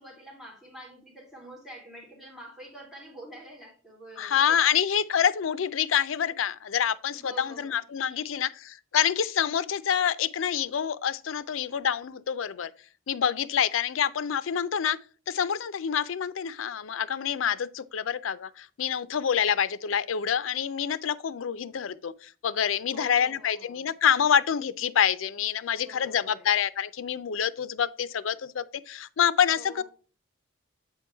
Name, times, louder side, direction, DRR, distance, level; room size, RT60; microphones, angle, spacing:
voice 1, 0.0-4.8 7.1-8.5 22.9-23.9 25.7-26.5 29.5-29.8, right 1 dB, ahead, 3.4 m, -47 dB
voice 2, 4.2-12.7 13.1-15.0 15.3-29.8, left 8 dB, 75° left, 0.5 m, -27 dB
8.1 x 4.6 x 3.4 m
head